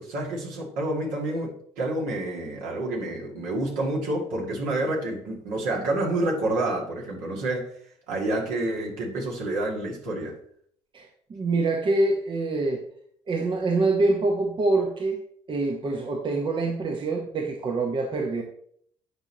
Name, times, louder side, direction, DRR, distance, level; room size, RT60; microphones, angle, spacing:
voice 1, 0.0-7.7 8.1-10.4, right 2 dB, 60° right, -2 dB, 2.3 m, -28 dB
voice 2, 10.9-12.8 13.3-15.2 15.5-18.4, right 2 dB, 35° right, 2 dB, 1.1 m, -25 dB
9.7 x 5.9 x 3.0 m, 0.63 s
figure-of-eight pair, 50°, 15 cm